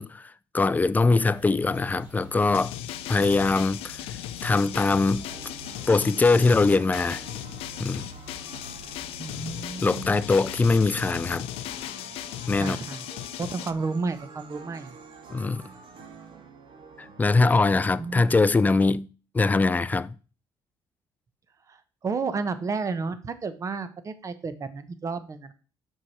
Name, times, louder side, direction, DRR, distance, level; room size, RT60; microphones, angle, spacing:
voice 1, 0.0-2.7 3.1-4.0 4.4-5.3 5.9-7.2 7.8-8.1 9.8-11.5 12.5-12.8 15.3-15.6 17.0-19.1 19.3-20.1, left 3 dB, 15° left, 0.4 m, -22 dB
sound 1, 1.3-11.0, equal, 15° right, 2.6 m, -47 dB
sound 2, 2.4-13.7, left 13 dB, 85° left, 0.5 m, -37 dB
sound 3, 4.8-18.3, right 4 dB, 60° right, 1.4 m, -49 dB
voice 2, 9.2-10.1 12.6-13.1 13.4-14.9 18.0-18.2 21.7-25.5, right 4 dB, 35° right, 0.9 m, -32 dB
6.0 x 4.7 x 5.9 m
cardioid pair, 95°, 9 cm